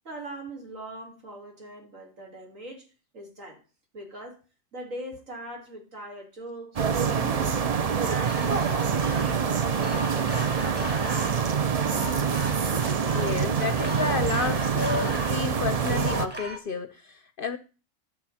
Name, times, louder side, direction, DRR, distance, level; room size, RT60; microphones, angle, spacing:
voice 1, 0.0-2.9 3.1-3.6 3.9-4.4 4.7-7.7 8.0-11.8, right 2 dB, 70° right, 3.2 m, -41 dB
sound 1, 6.8-16.3, right 6 dB, 45° right, 0.4 m, -26 dB
sound 2, 8.0-16.6, equal, 10° right, 1.4 m, -38 dB
voice 2, 13.0-17.6, left 5 dB, 50° left, 0.7 m, -31 dB
11.5 x 7.0 x 4.3 m
omnidirectional pair, 1.4 m